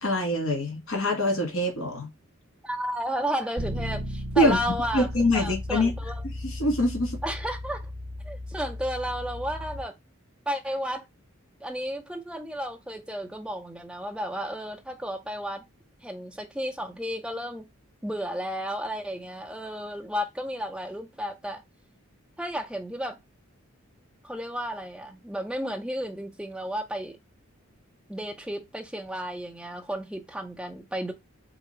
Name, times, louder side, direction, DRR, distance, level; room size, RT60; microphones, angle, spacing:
voice 1, 0.0-2.1 4.4-4.6 4.9-5.9 6.4-7.2, left 1 dB, 65° left, 1.6 m, -24 dB
voice 2, 2.6-5.1 5.3-6.3 7.2-7.8 8.2-9.9 10.5-11.1 11.6-15.6 16.0-17.6 18.0-21.6 22.4-23.2 24.2-27.2 28.1-31.1, equal, 5° right, 0.6 m, -33 dB
Bass guitar, 3.6-9.8, left 1 dB, 20° right, 1.4 m, -35 dB
3.6 x 2.9 x 4.3 m
head